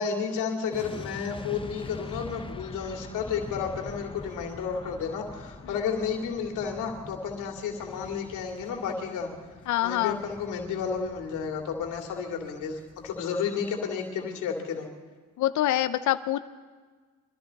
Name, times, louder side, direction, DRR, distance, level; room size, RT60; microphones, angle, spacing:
voice 1, 0.0-9.3 9.8-14.9, left 6 dB, 90° left, 2 dB, 2.6 m, -32 dB
sound 1, 0.7-13.9 14.1-14.3, left 3 dB, 15° left, 0.9 m, -44 dB
voice 2, 9.7-10.2 15.4-16.4, left 13 dB, 75° left, 12 dB, 0.7 m, -25 dB
23.5 x 14.0 x 4.1 m, 1.5 s
cardioid pair, 90°, 30 cm